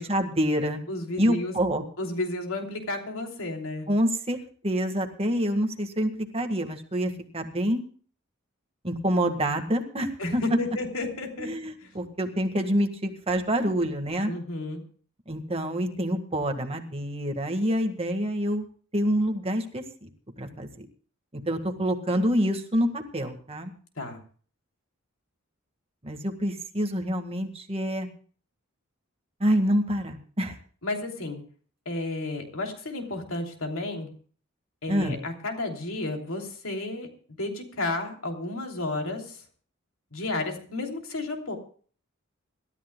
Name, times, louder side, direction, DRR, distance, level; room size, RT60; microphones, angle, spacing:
voice 1, 0.0-0.8 1.2-1.8 3.9-4.4 4.6-7.8 8.8-10.4 11.4-14.3 15.3-18.6 18.9-20.1 20.4-20.7 21.5-23.7 26.0-28.1 29.4-30.5 34.9-35.2, equal, 30° right, 5 dB, 1.7 m, -27 dB
voice 2, 0.9-1.5 2.0-3.9 10.2-11.5 11.8-11.9 14.3-14.8 24.0-24.2 30.8-31.4 31.8-34.1 34.8-37.1 37.4-39.4 40.1-41.6, left 2 dB, 80° left, 3 dB, 3.1 m, -32 dB
26.5 x 13.0 x 2.3 m, 0.43 s
head